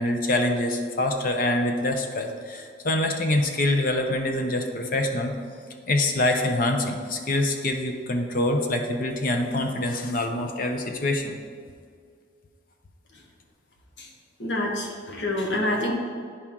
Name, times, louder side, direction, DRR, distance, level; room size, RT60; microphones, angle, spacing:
voice 1, 0.0-5.3 5.9-11.4, left 1 dB, 45° left, 4 dB, 0.6 m, -25 dB
voice 2, 14.4-15.9, left 1 dB, 70° left, -1 dB, 1.2 m, -27 dB
9.9 x 4.3 x 3.6 m, 2.1 s
head